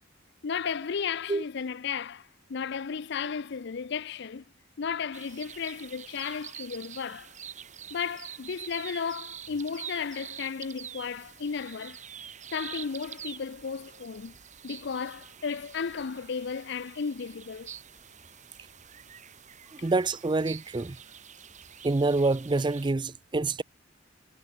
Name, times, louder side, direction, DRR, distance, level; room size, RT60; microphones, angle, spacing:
voice 1, 0.4-4.4 4.8-7.3 7.9-12.0 12.5-14.4 14.6-17.7 19.8-19.9, left 6 dB, 60° left, 0.5 m, -34 dB
sound 1, 5.1-22.9, right 9 dB, 40° right, 2.1 m, -46 dB
voice 2, 19.7-21.0 21.8-23.6, right 3 dB, 25° right, 0.5 m, -27 dB
head